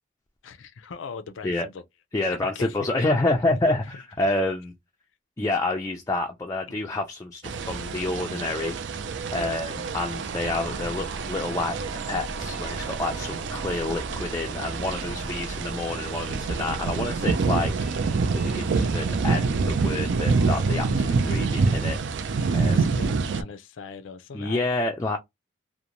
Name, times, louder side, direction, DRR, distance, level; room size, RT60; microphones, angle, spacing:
voice 1, 0.4-1.8 2.2-2.8 4.2-4.3 6.7-6.8 9.3-9.6 10.4-10.9 15.0-15.4 22.4-24.7, left 5 dB, 80° left, 0.4 m, -41 dB
voice 2, 2.1-4.7 5.4-8.8 9.3-11.8 12.1-17.7 18.3-22.0 22.5-22.9 24.3-25.2, left 2 dB, 15° left, 0.3 m, -28 dB
sound 1, 7.4-23.4, right 4 dB, 65° right, 0.4 m, -27 dB
sound 2, 10.3-22.0, equal, 5° right, 0.7 m, -41 dB
2.5 x 2.1 x 2.9 m
head